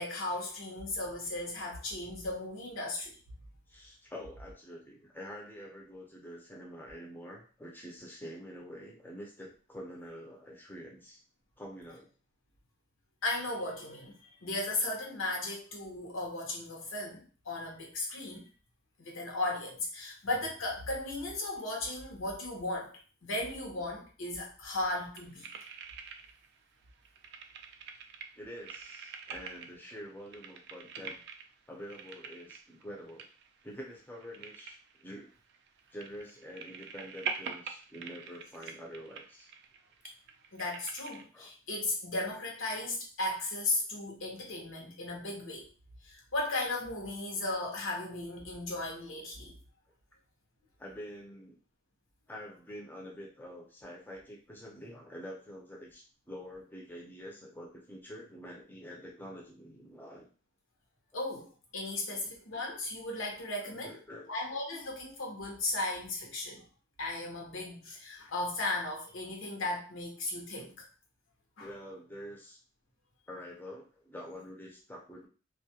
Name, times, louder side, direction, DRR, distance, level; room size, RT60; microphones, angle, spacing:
voice 1, 0.0-3.2 13.2-18.5 19.0-22.9 23.2-25.5 31.0-31.1 40.5-45.7 46.0-49.5 61.1-63.9 64.3-66.6 67.0-70.7 71.6-71.7, left 2 dB, 75° left, -1 dB, 0.8 m, -36 dB
voice 2, 3.7-11.2 11.6-12.1 28.4-31.2 31.7-33.3 33.6-35.3 35.9-39.5 41.3-41.5 50.8-51.6 52.3-60.3 61.9-62.3 63.7-64.3 71.6-72.6 73.3-75.3, equal, 10° left, -2 dB, 0.5 m, -46 dB
sound 1, 24.8-26.6 26.8-41.2, right 6 dB, 60° right, 0.3 m, -45 dB
2.3 x 2.1 x 2.8 m, 0.37 s
head